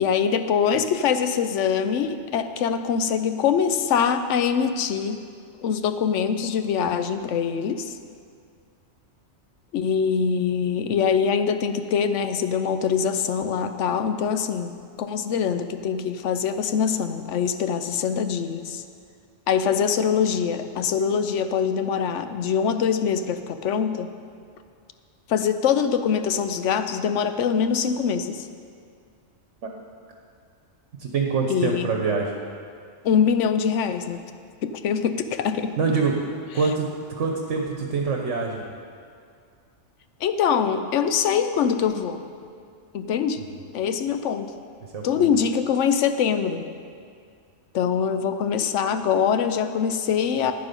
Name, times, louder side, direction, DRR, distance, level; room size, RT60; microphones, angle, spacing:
voice 1, 0.0-5.2 5.6-8.0 9.7-14.7 15.0-18.8 19.5-24.1 25.3-28.5 31.5-31.9 33.0-34.2 34.6-35.8 36.6-36.7 40.2-42.2 42.9-43.4 43.7-44.5 45.0-46.7 47.7-50.5, left 7 dB, 80° left, 9 dB, 1.0 m, -23 dB
voice 2, 31.0-32.3 35.8-36.2 36.5-36.9 37.2-38.6 44.9-45.3, right 4 dB, 75° right, 1 dB, 1.3 m, -25 dB
12.0 x 9.2 x 5.3 m, 2.2 s
omnidirectional pair, 1.2 m